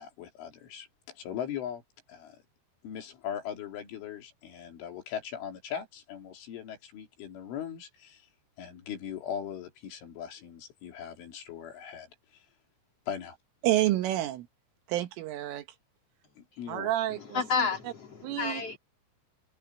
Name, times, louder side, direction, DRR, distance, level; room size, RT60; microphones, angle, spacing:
voice 1, 0.0-1.8 2.1-2.4 2.8-8.2 8.6-12.1 13.1-13.4 16.4-16.9, left 9 dB, 70° left, 5.6 m, -39 dB
voice 2, 13.6-14.5 14.9-15.7 16.7-17.7 18.2-18.6, right 14 dB, 80° right, 3.9 m, -29 dB
voice 3, 17.2-18.8, left 5 dB, 40° left, 2.6 m, -31 dB
omnidirectional pair, 5.9 m